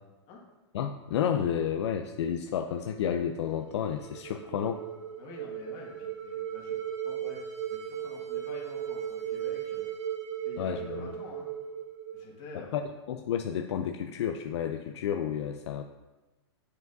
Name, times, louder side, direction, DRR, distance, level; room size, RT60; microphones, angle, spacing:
voice 1, 0.7-4.8 10.6-11.2 12.5-12.8 13.1-15.8, left 8 dB, 70° left, 6 dB, 0.4 m, -31 dB
sound 1, 3.6-12.8, right 10 dB, 85° right, 1.3 m, -37 dB
voice 2, 5.2-6.8 7.0-9.9 10.4-11.5 12.1-12.8, left 3 dB, 40° left, -1 dB, 1.7 m, -47 dB
7.6 x 5.4 x 2.6 m, 1.1 s
hypercardioid pair, 135°, 15 cm